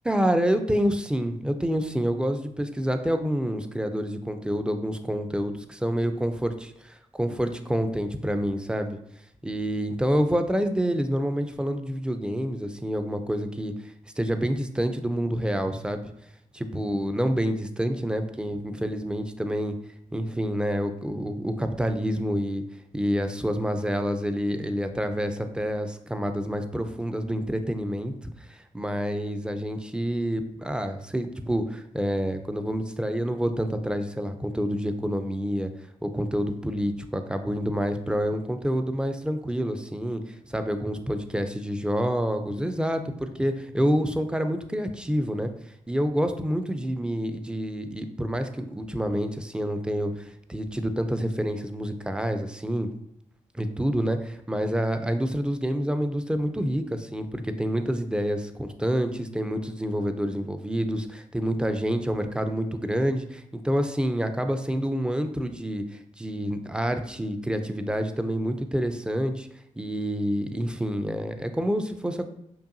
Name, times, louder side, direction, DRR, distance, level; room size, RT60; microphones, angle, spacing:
voice 1, 0.0-9.0 9.4-13.7 14.2-16.1 16.5-19.7 20.1-22.6 22.9-35.7 36.0-45.5 45.9-52.9 53.5-69.5 69.8-72.3, equal, 5° right, 8 dB, 0.4 m, -28 dB
5.4 x 2.3 x 2.6 m, 0.80 s
cardioid pair, 60°, 13 cm